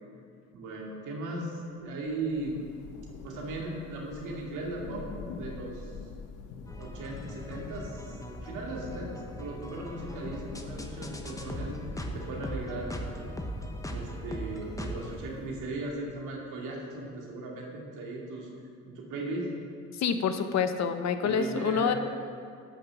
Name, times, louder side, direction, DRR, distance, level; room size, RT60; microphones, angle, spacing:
voice 1, 0.5-2.7 3.2-5.9 6.8-11.7 12.1-13.3 13.9-18.5 18.8-19.5 21.2-21.9, right 2 dB, 85° right, -2 dB, 2.4 m, -37 dB
Thunder / Rain, 1.9-16.0, left 4 dB, 85° left, 1.0 m, -45 dB
sound 1, 6.7-15.2, equal, 10° left, 1.0 m, -40 dB
voice 2, 19.9-21.9, left 7 dB, 60° left, 9 dB, 0.9 m, -27 dB
12.0 x 5.9 x 6.9 m, 2.4 s
cardioid pair, 90°, 30 cm